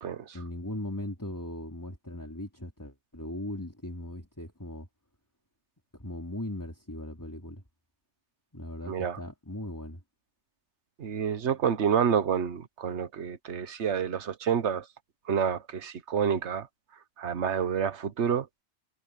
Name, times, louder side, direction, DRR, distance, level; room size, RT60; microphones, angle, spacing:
voice 1, 0.3-4.9 5.9-7.6 8.5-10.0, left 1 dB, 15° left, 3.4 m, -38 dB
voice 2, 8.9-9.2 11.0-14.8 15.3-16.7 17.2-18.5, right 7 dB, 70° right, 1.3 m, -28 dB
omnidirectional pair, 1.2 m